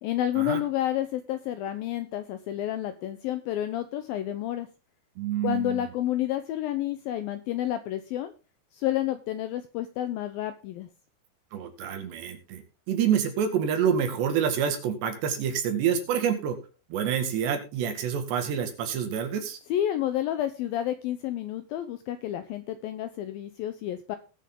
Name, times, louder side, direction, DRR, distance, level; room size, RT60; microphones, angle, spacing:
voice 1, 0.0-4.7 5.4-8.3 8.7-10.9 19.7-24.2, left 12 dB, 80° left, 10 dB, 2.1 m, -30 dB
voice 2, 5.2-5.9 11.5-12.6 12.9-16.6 16.9-19.6, right 8 dB, 80° right, 6 dB, 4.1 m, -27 dB
19.5 x 6.6 x 3.7 m, 0.32 s
omnidirectional pair, 5.0 m